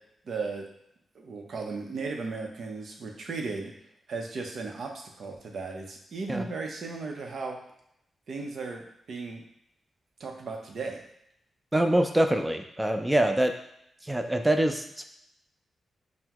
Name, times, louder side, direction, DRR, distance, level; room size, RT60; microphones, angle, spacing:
voice 1, 0.2-0.7 1.1-3.7 4.1-4.9 5.2-7.6 8.3-8.8 9.1-9.4 10.2-11.0, right 4 dB, 70° right, 2 dB, 0.7 m, -35 dB
voice 2, 11.7-13.5 14.1-15.0, right 1 dB, 15° right, 6 dB, 0.4 m, -24 dB
5.6 x 2.1 x 2.9 m, 0.75 s
cardioid pair, 55°, 0 cm